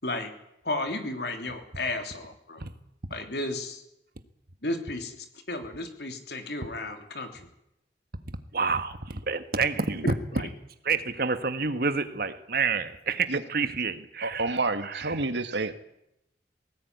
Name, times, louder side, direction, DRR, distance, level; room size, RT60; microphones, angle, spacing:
voice 1, 0.6-2.6 3.1-3.8 4.6-7.5 10.0-10.4, left 2 dB, 65° left, 3.4 m, -33 dB
voice 2, 8.5-10.0 10.8-14.4 14.9-15.0, right 5 dB, 55° right, 1.6 m, -28 dB
voice 3, 14.2-15.7, right 3 dB, 85° right, 1.8 m, -29 dB
19.5 x 18.0 x 9.6 m
head